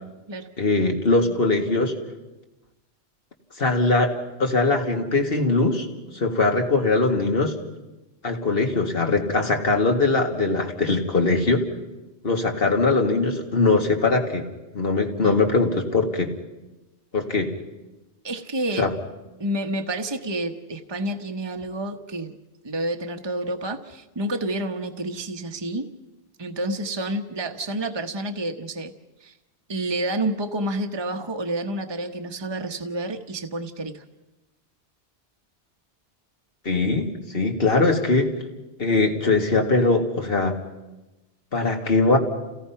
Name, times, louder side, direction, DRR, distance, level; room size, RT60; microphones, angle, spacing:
voice 1, 0.6-1.9 3.6-4.1 4.4-5.9 6.1-7.5 8.2-11.7 12.2-14.4 14.7-16.3 17.1-17.5 18.8-18.9 36.7-38.3 38.8-40.6 41.5-42.2, left 3 dB, 55° left, 3 dB, 2.3 m, -21 dB
voice 2, 18.2-18.9 19.4-22.4 22.6-25.9 26.4-28.9 29.2-29.3 29.7-34.0, right 1 dB, 25° right, 5 dB, 1.1 m, -29 dB
29.0 x 17.0 x 5.8 m, 1.0 s
omnidirectional pair, 1.1 m